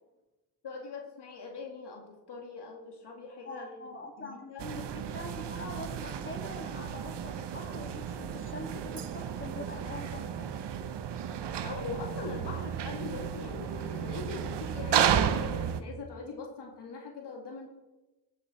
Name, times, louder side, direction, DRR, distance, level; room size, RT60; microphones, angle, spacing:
voice 1, 0.6-3.8 4.2-4.6 11.6-17.7, left 4 dB, 75° left, 1 dB, 2.3 m, -41 dB
voice 2, 3.4-10.5, left 2 dB, 30° left, 1 dB, 2.9 m, -43 dB
sound 1, 4.6-15.8, right 9 dB, 85° right, 0.9 m, -33 dB
15.0 x 8.6 x 4.3 m, 1.1 s
cardioid pair, 60°, 41 cm